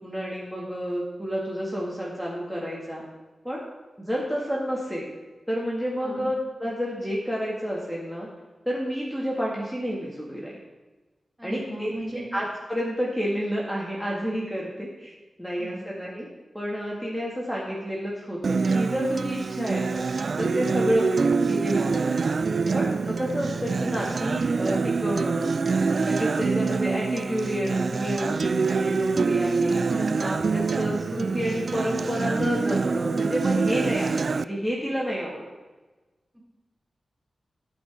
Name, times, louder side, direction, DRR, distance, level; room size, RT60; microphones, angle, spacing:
voice 1, 0.0-3.0 3.4-3.6 4.0-5.1 5.5-8.3 8.7-10.6 11.4-11.9 12.3-15.1 15.4-16.3 16.5-20.1 20.4-22.4 22.7-25.5 25.9-29.8 30.2-35.5, equal, ahead, -4 dB, 2.1 m, -30 dB
voice 2, 6.0-6.3 11.4-12.3 15.6-15.7 29.8-30.2, right 1 dB, 25° right, -3 dB, 3.2 m, -35 dB
Acoustic guitar, 18.4-34.4, right 4 dB, 65° right, 0.3 m, -25 dB
15.5 x 5.3 x 3.7 m, 1.2 s
cardioid pair, 50°, 0 cm